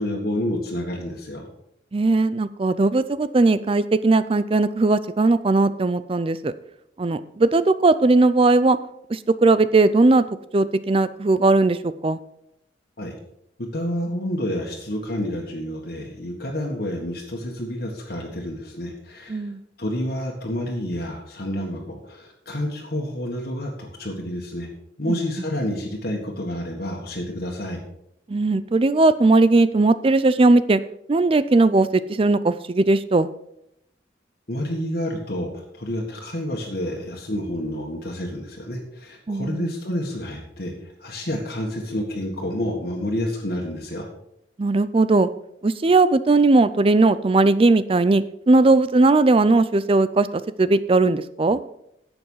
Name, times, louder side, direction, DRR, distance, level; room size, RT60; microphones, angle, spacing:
voice 1, 0.0-1.5 13.0-13.2 13.7-19.5 19.8-24.7 25.0-27.8 34.5-44.1, left 1 dB, 55° left, -1 dB, 1.7 m, -29 dB
voice 2, 1.9-6.5 7.0-8.8 9.1-10.2 10.5-12.2 19.3-19.6 28.3-30.8 31.1-33.3 39.3-39.7 44.6-45.3 45.6-50.3 50.6-51.6, right 3 dB, 30° right, 15 dB, 0.4 m, -18 dB
11.0 x 7.9 x 5.6 m, 0.78 s
head